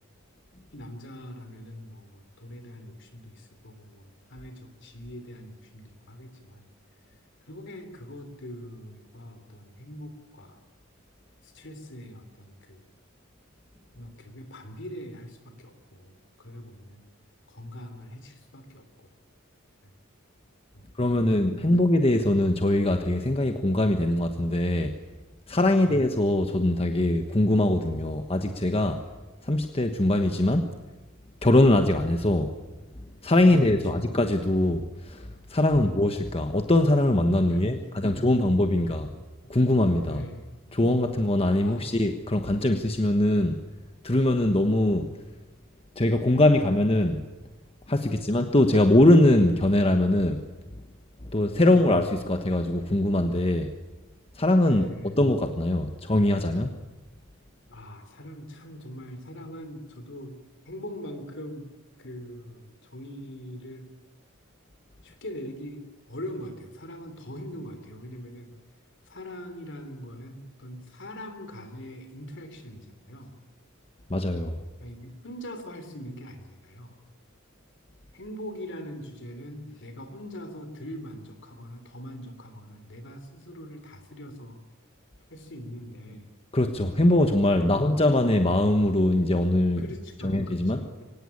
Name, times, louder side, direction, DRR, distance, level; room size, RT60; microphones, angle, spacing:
voice 1, 0.7-6.7 7.4-10.6 11.4-12.9 13.9-17.0 17.5-19.1 19.8-19.9 20.7-21.7 25.7-25.9 33.4-34.1 35.7-35.9 37.5-39.0 39.4-39.5 40.0-40.8 41.6-42.1 47.9-48.2 54.6-55.2 57.7-60.4 60.7-61.7 62.0-63.9 65.0-68.6 69.1-73.3 74.8-77.0 78.1-84.6 85.3-86.3 87.6-88.1 89.8-91.0, equal, 60° left, 9 dB, 3.6 m, -42 dB
voice 2, 21.0-24.9 25.5-29.0 29.4-30.7 31.4-32.5 33.2-39.1 39.5-40.2 40.7-43.6 44.0-45.1 46.0-47.2 47.9-50.4 51.2-53.7 54.3-56.8 74.1-74.6 86.5-89.8 90.2-90.8, left 1 dB, 30° left, 6 dB, 1.2 m, -22 dB
24.0 x 18.0 x 9.8 m, 1.2 s
head